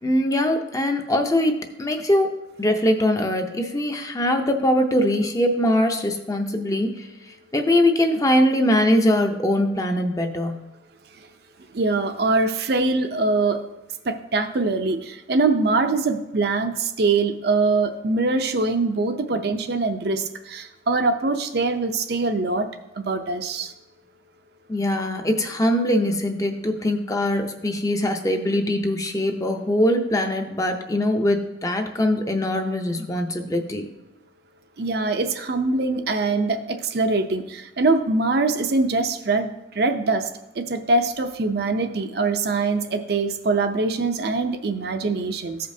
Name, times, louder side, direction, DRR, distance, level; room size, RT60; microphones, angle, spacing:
voice 1, 0.0-7.1 7.5-10.6 24.7-33.9, left 1 dB, 20° left, 5 dB, 0.6 m, -22 dB
voice 2, 11.7-13.6 14.1-22.7 23.1-23.7 34.8-39.5 39.8-40.2 40.6-45.6, right 3 dB, 55° right, 7 dB, 0.5 m, -23 dB
14.5 x 5.1 x 2.7 m, 0.94 s
head